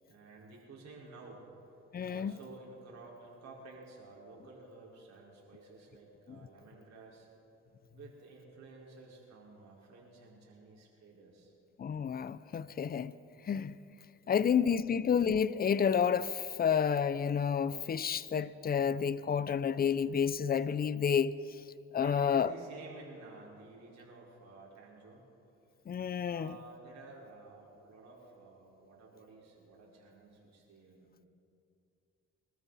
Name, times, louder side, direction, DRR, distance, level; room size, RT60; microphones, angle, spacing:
voice 1, 0.1-1.4 2.1-7.3 7.9-11.5 14.2-14.7 22.0-25.2 26.2-31.3, right 3 dB, 60° right, 4.9 m, -52 dB
voice 2, 1.9-2.3 11.8-13.2 13.4-13.8 14.3-21.3 21.9-22.5 25.9-26.6, left 7 dB, 30° left, 0.5 m, -30 dB
24.5 x 13.5 x 4.2 m
cardioid pair, 90°, 30 cm